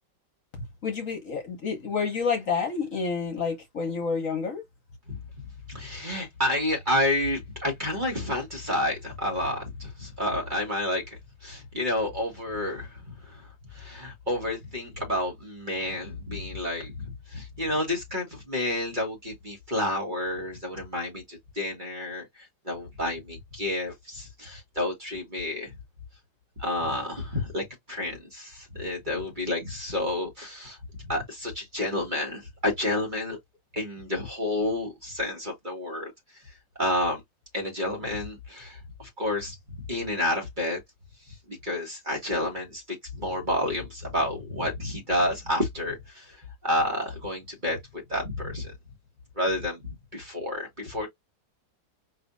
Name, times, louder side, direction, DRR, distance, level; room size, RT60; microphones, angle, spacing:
voice 1, 0.8-4.6, left 5 dB, 50° left, 1.3 m, -29 dB
voice 2, 5.7-12.9 13.2-13.4 13.7-22.2 22.7-25.7 26.6-30.8 31.1-33.4 33.7-36.1 36.8-37.2 37.5-40.8 41.5-46.2 46.6-47.8 48.1-48.7 49.4-51.1, left 1 dB, 25° right, 1.6 m, -30 dB
5.1 x 3.2 x 2.6 m
omnidirectional pair, 2.0 m